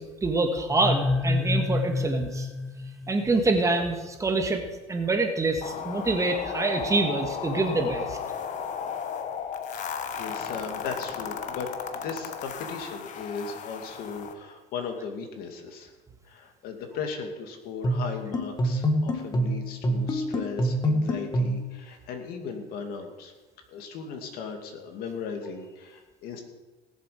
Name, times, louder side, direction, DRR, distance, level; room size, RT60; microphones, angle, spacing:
voice 1, 0.0-2.5 3.1-4.6 4.9-8.2, right 3 dB, 20° right, 4 dB, 1.6 m, -26 dB
sound 1, 0.7-3.5, left 3 dB, ahead, 0.5 m, -28 dB
sound 2, 5.6-14.3, left 7 dB, 45° left, 1.3 m, -35 dB
voice 2, 9.7-15.9 16.2-23.3 23.7-26.4, left 5 dB, 65° left, 4 dB, 2.5 m, -37 dB
sound 3, 17.8-21.7, equal, 25° left, 1.7 m, -26 dB
19.0 x 7.4 x 5.1 m, 1.2 s
cardioid pair, 120°, 17 cm